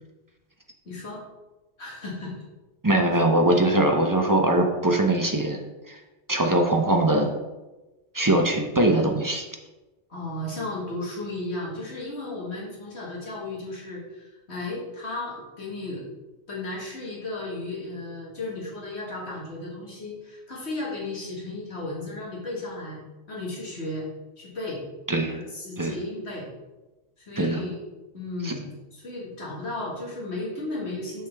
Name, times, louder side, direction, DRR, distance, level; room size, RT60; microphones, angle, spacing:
voice 1, 0.9-1.2 1.8-2.3 3.0-3.2 10.1-16.0 16.5-23.0 23.3-24.1 24.4-24.8 25.3-26.5 27.2-27.8 28.1-31.3, left 2 dB, 60° left, -4 dB, 2.1 m, -34 dB
voice 2, 2.8-5.6 5.9-6.0 6.3-7.3 8.1-9.5 25.1-25.4 25.8-26.0 27.4-27.6 28.4-28.5, right 1 dB, 25° right, 2 dB, 0.5 m, -21 dB
6.4 x 6.3 x 3.4 m, 1.1 s
omnidirectional pair, 1.2 m